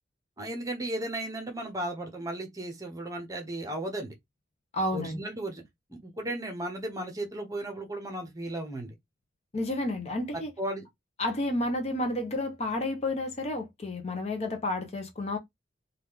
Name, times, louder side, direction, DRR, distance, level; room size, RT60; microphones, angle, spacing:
voice 1, 0.4-4.1 4.9-5.6 6.0-8.9 10.6-10.8, right 1 dB, 20° right, 0.9 m, -35 dB
voice 2, 4.7-5.2 9.5-10.5 11.2-15.4, left 1 dB, 35° left, 0.7 m, -31 dB
3.0 x 2.4 x 3.5 m
head